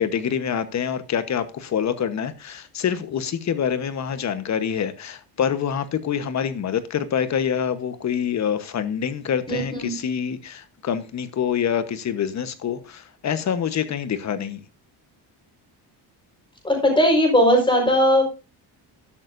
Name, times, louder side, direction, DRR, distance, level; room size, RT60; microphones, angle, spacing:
voice 1, 0.0-14.6, left 8 dB, 40° left, 1.2 m, -26 dB
voice 2, 9.5-9.9 16.6-18.2, equal, 10° left, 4.8 m, -18 dB
12.5 x 11.5 x 2.7 m
cardioid pair, 165°, 41 cm